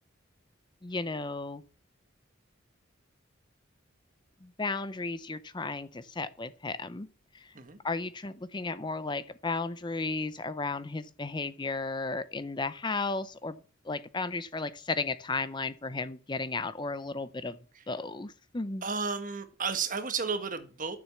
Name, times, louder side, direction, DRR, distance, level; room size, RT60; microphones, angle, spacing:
voice 1, 0.8-1.6 4.4-7.1 7.3-7.5 7.8-13.6 13.8-17.6 17.9-18.8, left 3 dB, 20° left, 0.6 m, -34 dB
voice 2, 18.8-21.0, right 5 dB, 40° right, 1.5 m, -32 dB
13.0 x 7.3 x 7.0 m
head